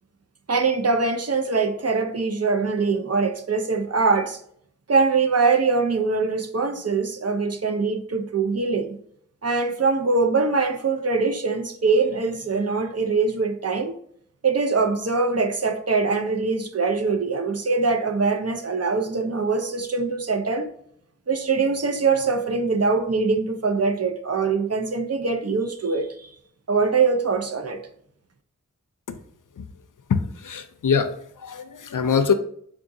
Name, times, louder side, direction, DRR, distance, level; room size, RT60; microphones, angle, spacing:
voice 1, 0.5-4.4 4.9-9.0 9.4-13.9 14.4-20.7 21.3-26.3 26.7-27.8, right 4 dB, 50° right, 0.5 m, -23 dB
voice 2, 30.1-31.1 31.4-32.3, left 6 dB, 75° left, 0.5 m, -23 dB
3.7 x 3.6 x 2.6 m
wide cardioid pair, 45°, 32 cm